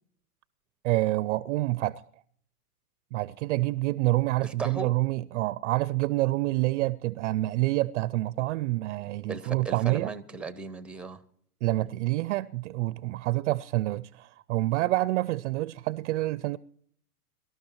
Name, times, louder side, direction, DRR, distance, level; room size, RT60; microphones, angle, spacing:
voice 1, 0.8-2.0 3.1-10.1 11.6-16.6, right 18 dB, 50° right, 0.4 m, -27 dB
voice 2, 4.4-4.9 9.3-11.2, right 4 dB, ahead, 0.6 m, -36 dB
24.5 x 12.5 x 3.0 m
hypercardioid pair, 115°, 47 cm